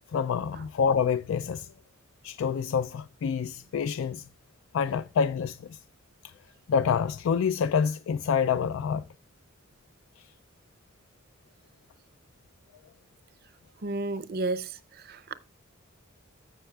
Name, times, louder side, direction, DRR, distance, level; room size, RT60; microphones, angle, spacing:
voice 1, 0.1-1.7 2.2-4.3 4.7-5.8 6.2-6.3 6.7-9.0 10.2-10.3, left 6 dB, 70° left, 0.3 m, -27 dB
voice 2, 13.8-15.3, right 2 dB, 50° right, 0.6 m, -32 dB
15.0 x 5.6 x 2.3 m
head